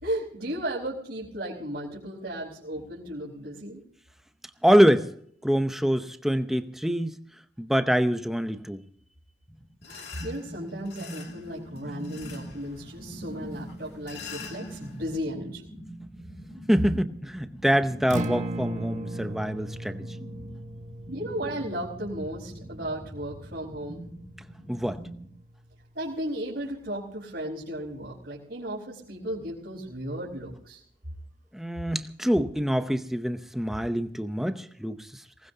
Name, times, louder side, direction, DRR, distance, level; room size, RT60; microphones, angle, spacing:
voice 1, 0.0-3.8 9.9-15.7 21.1-24.0 25.9-30.8, right 1 dB, 65° right, 4.5 m, -35 dB
voice 2, 4.6-5.1 5.4-7.2 7.6-8.8 16.7-20.0 24.7-25.0 31.5-35.2, equal, ahead, 0.7 m, -25 dB
sound 1, 9.5-25.3, right 1 dB, 20° left, 2.5 m, -43 dB
sound 2, 9.8-15.2, left 6 dB, 65° left, 2.4 m, -46 dB
Acoustic guitar, 18.0-26.2, right 1 dB, 40° right, 1.3 m, -38 dB
23.0 x 19.5 x 2.8 m
head